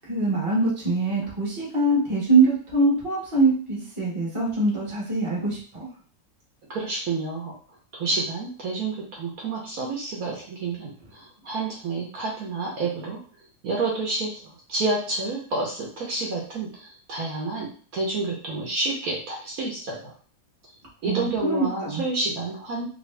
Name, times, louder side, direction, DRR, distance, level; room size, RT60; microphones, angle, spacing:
voice 1, 0.1-5.9 21.0-22.0, right 3 dB, 20° right, -4 dB, 1.0 m, -23 dB
voice 2, 6.7-7.5 7.9-13.2 13.6-20.1 21.0-22.9, right 3 dB, 65° right, -2 dB, 1.2 m, -29 dB
3.1 x 2.6 x 3.2 m, 0.43 s
omnidirectional pair, 1.8 m